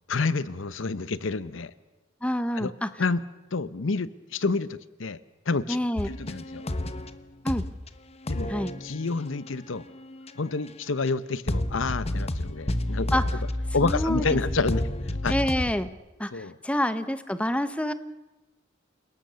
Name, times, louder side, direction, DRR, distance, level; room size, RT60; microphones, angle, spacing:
voice 1, 0.1-1.7 2.5-2.7 3.0-3.2 3.5-5.2 5.5-5.8 6.1-6.6 8.3-8.5 8.8-9.9 10.4-13.2 13.7-15.3 16.3-16.6, left 3 dB, 70° left, 16 dB, 0.8 m, -29 dB
voice 2, 2.2-2.9 5.7-6.1 7.4-7.6 8.5-8.7 13.1-13.2 13.8-14.4 15.3-15.9 16.2-17.9, left 1 dB, 5° left, 12 dB, 0.8 m, -27 dB
sound 1, 6.0-7.2 7.5-7.9 8.2-10.7 11.1-11.2 11.5-15.9, left 1 dB, 30° left, 1.0 m, -30 dB
28.5 x 19.0 x 6.9 m, 1.1 s
head